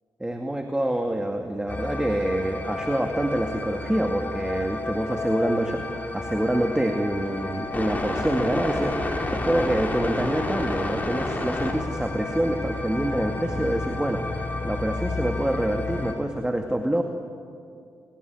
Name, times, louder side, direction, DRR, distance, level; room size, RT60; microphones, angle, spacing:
voice 1, 0.2-5.8 6.1-17.0, right 1 dB, 10° right, 4 dB, 2.2 m, -26 dB
sound 1, 1.7-16.1, left 2 dB, 25° left, 4.7 m, -30 dB
27.5 x 17.0 x 9.6 m, 2.4 s
supercardioid pair, 45°, 7 cm